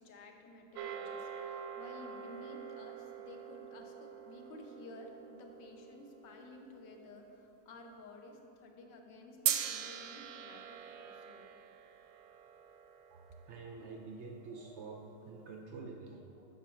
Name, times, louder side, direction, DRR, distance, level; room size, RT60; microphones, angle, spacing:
voice 1, 0.0-11.5, left 2 dB, 85° left, 3 dB, 1.6 m, -53 dB
sound 1, 0.7-7.2 9.5-13.9, right 9 dB, 70° right, 0.9 m, -42 dB
voice 2, 13.1-16.5, right 4 dB, 90° right, 2 dB, 0.6 m, -48 dB
8.1 x 5.8 x 6.1 m, 2.9 s
omnidirectional pair, 2.0 m